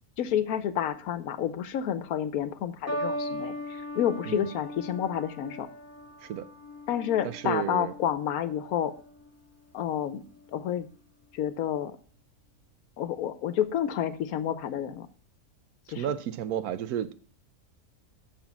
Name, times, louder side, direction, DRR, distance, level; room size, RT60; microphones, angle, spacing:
voice 1, 0.2-5.7 6.9-8.9 9.7-10.3 10.5-10.9 11.3-12.0 13.0-15.1 15.9-16.0, left 10 dB, 75° left, 1.1 m, -29 dB
sound 1, 2.9-9.4 10.2-10.6, equal, 20° left, 0.4 m, -39 dB
voice 2, 7.2-7.9 16.0-17.1, right 9 dB, 75° right, 1.1 m, -32 dB
6.4 x 5.9 x 7.1 m
omnidirectional pair, 1.6 m